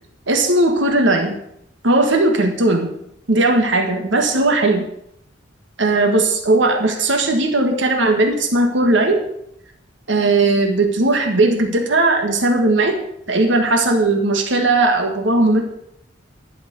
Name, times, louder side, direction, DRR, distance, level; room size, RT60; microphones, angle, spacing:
voice 1, 0.3-1.3 1.8-2.9 3.3-4.8 5.8-9.2 10.1-13.0 13.3-15.6, right 2 dB, 80° right, 4 dB, 1.6 m, -17 dB
11.5 x 6.0 x 8.0 m, 0.76 s
head